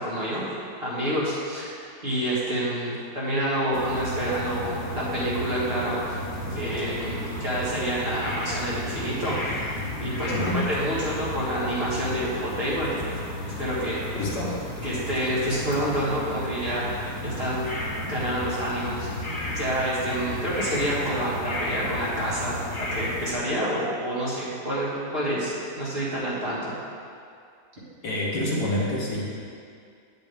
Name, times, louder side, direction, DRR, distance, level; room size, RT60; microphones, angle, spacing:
voice 1, 0.0-14.0 14.8-17.7 18.0-19.1 19.4-26.8, right 1 dB, 35° right, -9 dB, 2.2 m, -28 dB
sound 1, 3.7-23.3, left 1 dB, 45° left, 1.7 m, -33 dB
voice 2, 10.3-10.7 14.1-14.6 28.0-29.3, left 1 dB, 70° left, -4 dB, 1.9 m, -27 dB
9.2 x 8.3 x 3.6 m, 2.3 s
omnidirectional pair, 1.8 m